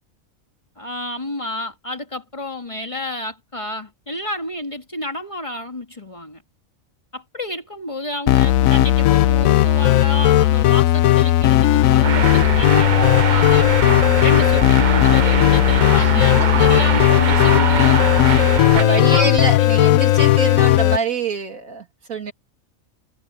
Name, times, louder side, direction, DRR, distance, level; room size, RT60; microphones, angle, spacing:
voice 1, 0.8-6.4 7.1-13.7 14.2-18.0 18.8-19.8, left 1 dB, 25° left, 1.8 m, -29 dB
sound 1, 8.3-21.0, left 14 dB, 85° left, 1.0 m, -15 dB
sound 2, 12.0-18.8, right 7 dB, 45° right, 0.7 m, -23 dB
voice 2, 16.0-16.7 18.7-22.3, right 4 dB, 90° right, 3.0 m, -26 dB
omnidirectional pair, 1.4 m